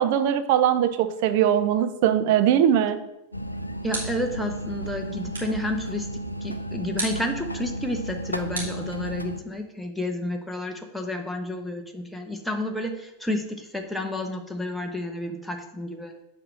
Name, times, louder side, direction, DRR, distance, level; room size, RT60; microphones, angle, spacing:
voice 1, 0.0-3.0, right 10 dB, 50° right, 10 dB, 0.7 m, -21 dB
Light switch on small lamp, 3.2-4.4 5.3-5.7 7.0-7.3 8.5-9.4, right 2 dB, 70° right, 2.9 m, -35 dB
sound 1, 3.3-9.4, equal, 85° left, 0.5 m, -33 dB
voice 2, 3.8-6.1 6.4-16.1, left 1 dB, ahead, 3 dB, 0.9 m, -31 dB
7.9 x 4.6 x 6.2 m, 0.93 s
figure-of-eight pair, 90°, 0 cm